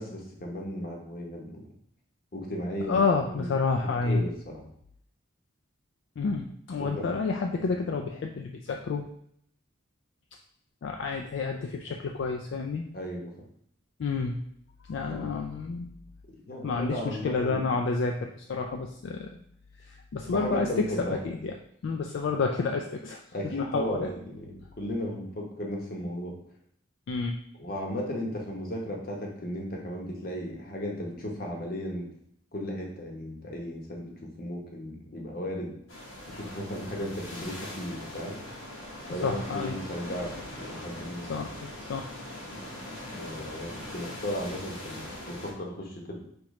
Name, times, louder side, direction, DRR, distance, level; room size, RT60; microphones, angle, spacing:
voice 1, 0.0-1.6 2.3-3.5 4.0-4.6 6.8-7.1 12.9-13.3 15.0-15.3 16.5-17.8 20.2-21.2 23.3-26.4 27.6-32.1 32.5-34.1 34.4-35.7 36.3-38.4 39.1-41.3 43.1-46.1, equal, 45° left, 0 dB, 0.9 m, -35 dB
voice 2, 2.9-4.2 6.2-9.1 10.8-12.8 14.0-14.4 14.9-15.9 16.6-19.4 19.8-21.5 21.8-24.1 27.1-27.4 39.2-39.7 41.3-42.1, left 4 dB, 65° left, 3 dB, 0.3 m, -29 dB
sound 1, 35.9-45.5, left 1 dB, 85° left, 1.2 m, -41 dB
4.9 x 3.0 x 3.1 m, 0.69 s
head